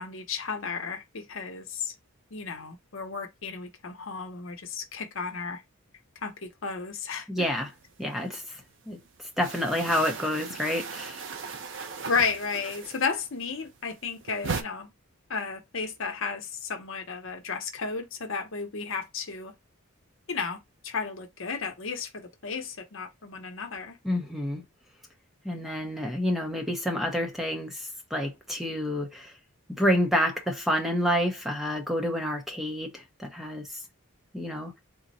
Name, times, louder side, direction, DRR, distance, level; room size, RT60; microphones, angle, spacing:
voice 1, 0.0-1.9 2.3-5.6 6.2-7.5 12.0-14.9 15.3-19.5 20.3-20.6 20.8-24.0, left 5 dB, 65° left, 0.8 m, -33 dB
voice 2, 7.3-7.7 8.0-8.6 8.9-9.0 9.4-11.2 24.0-24.6 25.4-29.3 29.8-33.8 34.3-34.7, equal, ahead, 0.7 m, -28 dB
sound 1, 7.6-8.6 8.9-13.3 13.6-14.6, right 5 dB, 60° right, 0.6 m, -37 dB
3.8 x 2.1 x 4.0 m
head